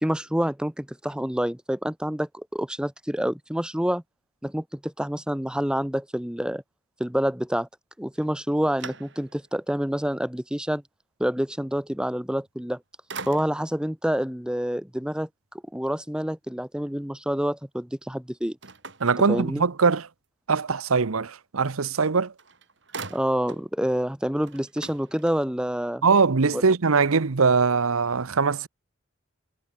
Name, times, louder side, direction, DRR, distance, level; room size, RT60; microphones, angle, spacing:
voice 1, 0.0-4.0 4.4-6.6 7.0-7.7 8.0-10.8 11.2-12.8 13.3-15.3 15.7-18.6 19.3-19.6 23.1-26.0 26.5-26.6, equal, 5° right, 0.8 m, -27 dB
sound 1, 8.1-9.6 10.1-10.2 12.4-12.8 13.1-13.8 18.6-19.9 22.0-22.1 22.4-23.7 24.0-24.1 24.4-25.7, right 4 dB, 55° right, 3.8 m, -42 dB
voice 2, 19.0-20.1 20.5-22.3 26.0-28.7, right 5 dB, 85° right, 0.9 m, -22 dB
head